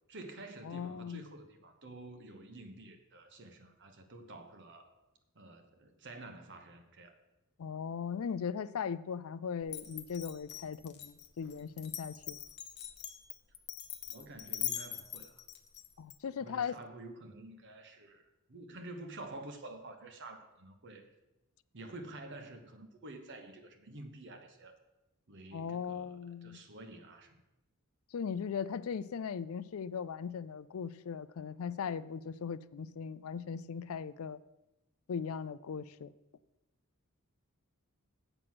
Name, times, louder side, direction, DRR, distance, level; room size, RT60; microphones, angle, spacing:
voice 1, 0.1-4.9 5.3-7.2 14.1-15.4 16.4-18.2 18.5-21.1 21.7-24.8 25.3-27.4, right 2 dB, 55° right, 6 dB, 1.2 m, -49 dB
voice 2, 0.6-1.2 7.6-12.4 16.0-16.8 25.5-26.6 28.1-34.4 35.1-36.1, left 6 dB, 65° left, 16 dB, 0.4 m, -38 dB
Glass, 9.7-16.2, left 11 dB, 50° left, 0.8 m, -42 dB
7.8 x 5.9 x 7.7 m, 0.98 s
head